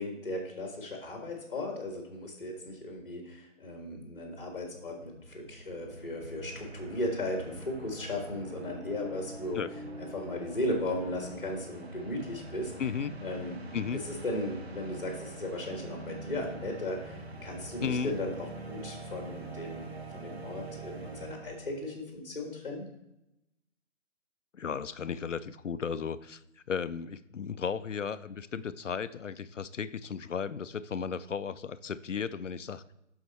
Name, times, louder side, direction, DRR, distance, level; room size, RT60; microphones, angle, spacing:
voice 1, 0.0-9.6 10.0-12.7 13.2-13.5 14.2-22.8, left 1 dB, 40° left, 2 dB, 1.7 m, -36 dB
sound 1, 4.2-4.3 4.4-21.9, right 2 dB, 50° right, 1.2 m, -44 dB
voice 2, 12.8-13.2 13.7-14.0 17.8-18.2 24.5-26.4 26.7-32.8, left 6 dB, 65° left, 15 dB, 0.5 m, -35 dB
7.9 x 5.6 x 4.2 m, 0.89 s
hypercardioid pair, 175°, 40 cm